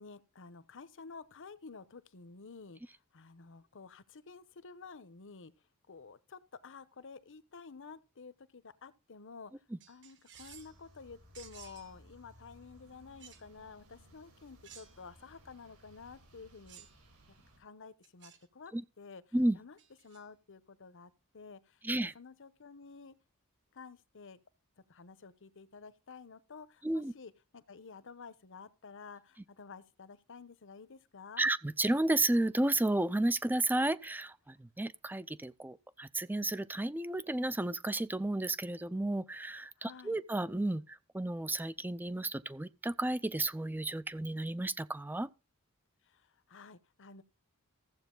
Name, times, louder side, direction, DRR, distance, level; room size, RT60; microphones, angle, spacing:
voice 1, 0.0-5.5 5.9-9.5 9.9-16.9 17.4-19.2 19.5-19.8 20.0-21.8 22.1-23.2 23.7-24.4 24.9-31.5 39.8-40.2 46.1-47.2, left 5 dB, 60° left, 0.9 m, -51 dB
sound 1, 9.8-10.8 11.3-11.9 13.2-13.5 14.6-15.2 16.7-17.0 18.0-18.5 19.8-20.2, right 9 dB, 55° right, 1.8 m, -55 dB
sound 2, 10.3-17.6, equal, 80° right, 5.4 m, -61 dB
voice 2, 21.8-22.1 26.8-27.1 31.4-45.3, right 1 dB, 10° right, 0.5 m, -32 dB
15.0 x 8.0 x 3.8 m
head